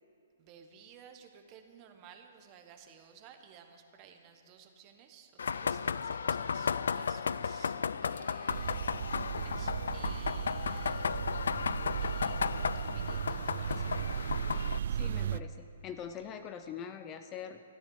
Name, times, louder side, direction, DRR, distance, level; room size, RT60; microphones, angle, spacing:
voice 1, 0.4-11.4 12.0-14.0, right 7 dB, 25° right, 6 dB, 1.1 m, -56 dB
sound 1, 5.4-14.8, left 6 dB, 80° left, 0.4 m, -34 dB
sound 2, 8.5-15.4, right 8 dB, 60° right, 0.3 m, -36 dB
voice 2, 14.9-17.6, left 8 dB, 20° left, 8 dB, 0.5 m, -43 dB
14.0 x 10.5 x 7.2 m, 2.8 s
hypercardioid pair, 165°, 0 cm